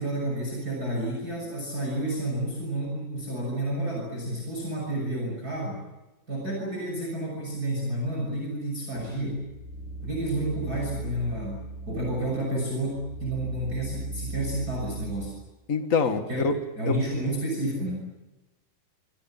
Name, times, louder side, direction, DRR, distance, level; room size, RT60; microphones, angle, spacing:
voice 1, 0.0-5.8 6.3-9.4 10.0-15.4 16.3-16.4 16.8-18.1, right 1 dB, 25° right, -1 dB, 7.0 m, -30 dB
sound 1, 8.9-15.3, right 3 dB, 65° left, 3.2 m, -39 dB
voice 2, 15.7-16.6 16.9-17.0, left 5 dB, 35° left, 7 dB, 1.3 m, -25 dB
27.0 x 24.5 x 7.4 m, 1.1 s
omnidirectional pair, 4.2 m